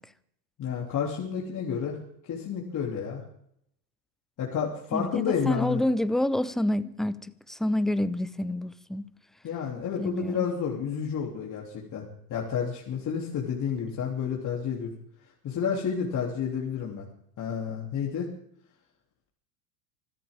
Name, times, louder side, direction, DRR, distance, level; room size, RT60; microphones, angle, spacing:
voice 1, 0.6-2.0 2.2-3.2 4.4-5.8 9.4-12.0 12.3-14.9 15.4-17.1 17.4-18.3, left 7 dB, 40° left, 3.0 m, -30 dB
voice 2, 4.9-7.2 7.5-9.0 10.0-10.5, left 1 dB, ahead, 0.6 m, -28 dB
25.0 x 13.5 x 3.6 m
hypercardioid pair, 90°, 48 cm